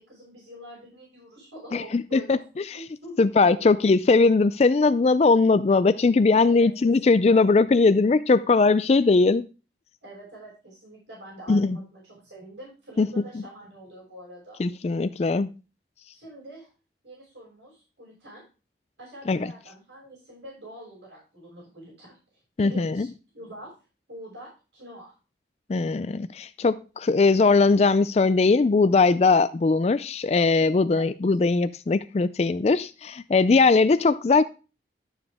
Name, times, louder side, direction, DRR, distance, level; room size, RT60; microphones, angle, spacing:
voice 1, 0.0-2.4 2.7-3.3 3.5-3.6 6.5-7.0 7.3-7.4 10.0-14.6 16.1-16.7 17.0-18.4 19.0-23.1 23.3-23.7 24.1-25.1 30.9-31.1, right 1 dB, 85° right, 6.2 m, -45 dB
voice 2, 1.7-2.4 3.2-9.4 11.5-11.8 13.0-13.1 14.6-15.5 19.3-19.5 22.6-23.1 25.7-34.4, left 3 dB, 35° left, 0.3 m, -20 dB
11.5 x 7.1 x 3.5 m
head